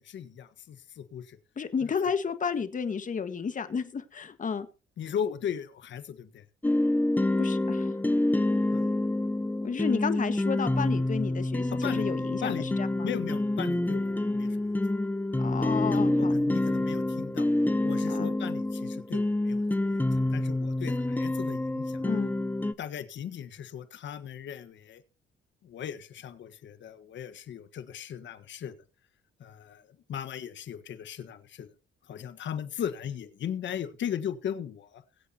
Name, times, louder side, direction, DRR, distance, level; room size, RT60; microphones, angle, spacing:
voice 1, 0.0-1.4 1.8-1.9 5.0-6.4 8.7-8.9 11.7-12.1 12.4-14.7 15.9-17.5 17.8-22.0 22.8-25.0 25.6-28.8 29.4-31.7 32.0-35.0, left 9 dB, 70° left, 11 dB, 1.5 m, -38 dB
voice 2, 1.6-4.7 7.4-7.9 9.6-13.1 15.4-16.4 18.1-18.3 22.0-22.3, left 6 dB, 40° left, 10 dB, 1.7 m, -32 dB
sound 1, 6.6-22.7, left 1 dB, 10° left, 0.8 m, -27 dB
22.0 x 8.4 x 2.9 m, 0.33 s
cardioid pair, 90°, 20 cm